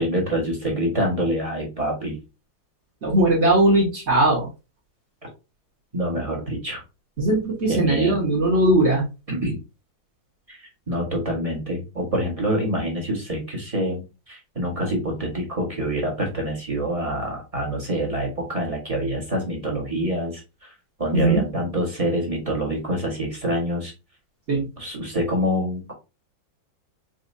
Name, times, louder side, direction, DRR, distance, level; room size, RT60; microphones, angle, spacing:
voice 1, 0.0-2.2 5.2-5.3 5.9-6.8 7.7-8.2 9.3-9.6 10.5-20.7 21.0-23.9 24.8-25.9, equal, 25° right, -1 dB, 0.9 m, -26 dB
voice 2, 3.0-4.5 7.2-9.1 21.1-21.4 24.5-24.6, right 1 dB, 40° right, -2 dB, 1.2 m, -19 dB
4.3 x 2.6 x 2.5 m, 0.28 s
omnidirectional pair, 2.2 m